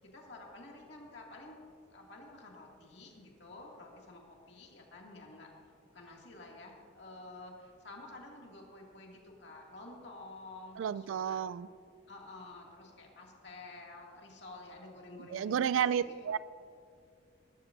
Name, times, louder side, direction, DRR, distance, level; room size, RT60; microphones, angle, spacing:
voice 1, 0.1-1.6 1.9-5.5 5.9-11.4 12.1-16.4, left 2 dB, 60° left, 2.3 m, -50 dB
voice 2, 10.8-11.7 15.3-16.4, right 8 dB, 80° right, 0.3 m, -31 dB
20.0 x 11.5 x 2.6 m
head